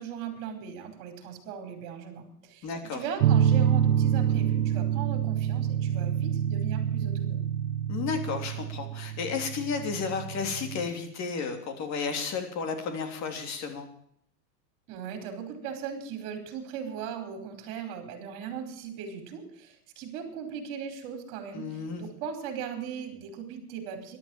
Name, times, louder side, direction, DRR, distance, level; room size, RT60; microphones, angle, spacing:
voice 1, 0.0-7.4 14.9-24.2, right 7 dB, 45° right, 5 dB, 5.1 m, -38 dB
voice 2, 2.6-3.0 7.9-13.9 21.5-22.0, left 5 dB, 35° left, 6 dB, 3.3 m, -32 dB
sound 1, 3.2-10.9, right 9 dB, 65° right, 1.1 m, -27 dB
13.5 x 12.0 x 7.4 m, 0.67 s
supercardioid pair, 135°, 50 cm